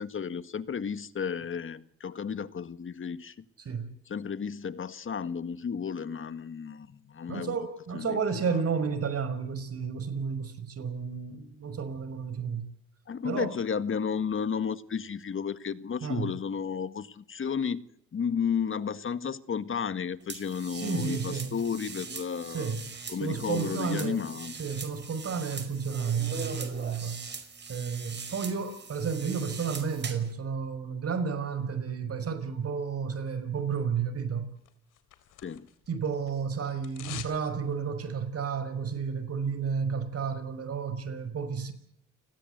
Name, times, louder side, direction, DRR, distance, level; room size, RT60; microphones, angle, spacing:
voice 1, 0.0-3.4 4.1-7.6 7.9-8.2 13.1-17.9 18.1-22.7 23.1-24.6 35.4-35.7, left 6 dB, 40° left, 1.7 m, -33 dB
voice 2, 3.6-3.9 7.3-12.7 13.2-13.5 16.0-16.3 20.7-21.5 22.5-22.9 23.2-24.2 24.6-27.2 27.7-34.5 35.9-41.7, right 6 dB, 50° right, 5.5 m, -32 dB
sound 1, 20.3-30.3, right 4 dB, 35° right, 5.3 m, -41 dB
sound 2, 34.6-35.9 36.1-37.4 37.7-37.8, left 11 dB, 85° left, 3.6 m, -44 dB
29.5 x 20.0 x 8.1 m
cardioid pair, 90°, 30 cm